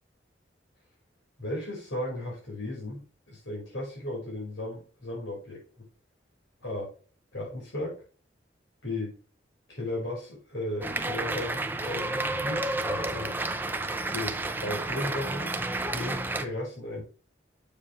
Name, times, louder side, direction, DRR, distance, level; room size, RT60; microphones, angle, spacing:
voice 1, 1.4-3.0 3.3-5.9 6.6-6.9 7.3-8.0 8.8-9.2 9.7-13.3 14.1-15.5 15.9-17.0, left 1 dB, 80° left, -2 dB, 4.9 m, -35 dB
sound 1, 10.8-16.4, right 2 dB, 10° right, 0.6 m, -31 dB
8.3 x 7.1 x 3.2 m, 0.37 s
head